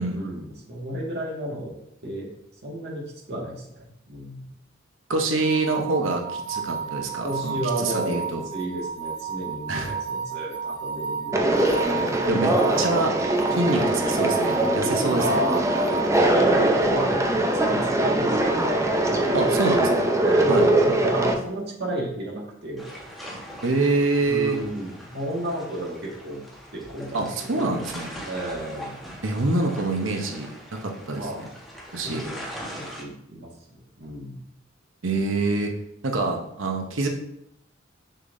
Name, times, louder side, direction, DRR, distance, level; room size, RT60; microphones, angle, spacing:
voice 1, 0.0-1.7 2.0-2.3 2.6-4.5 7.2-11.5 12.0-12.4 13.6-14.2 15.1-15.6 15.9-18.8 19.1-19.6 20.2-22.9 23.3-23.4 24.3-26.4 26.7-27.7 28.2-29.0 31.1-31.5 32.0-32.4 32.8-33.5 34.0-34.4, right 1 dB, 60° right, -3 dB, 1.7 m, -32 dB
voice 2, 5.1-8.4 9.7-10.0 12.3-12.5 12.8-13.1 13.5-15.4 19.3-20.1 20.5-20.7 23.6-24.6 27.1-28.1 29.2-31.5 31.9-32.2 35.0-35.7 36.0-37.1, right 3 dB, 80° right, 3 dB, 0.8 m, -26 dB
sound 1, 5.4-16.2, right 7 dB, 45° left, 2.5 m, -33 dB
Conversation, 11.3-21.3, right 1 dB, 15° right, 0.6 m, -22 dB
sound 2, 22.8-33.0, equal, ahead, 1.3 m, -41 dB
6.6 x 5.8 x 2.6 m, 0.77 s
head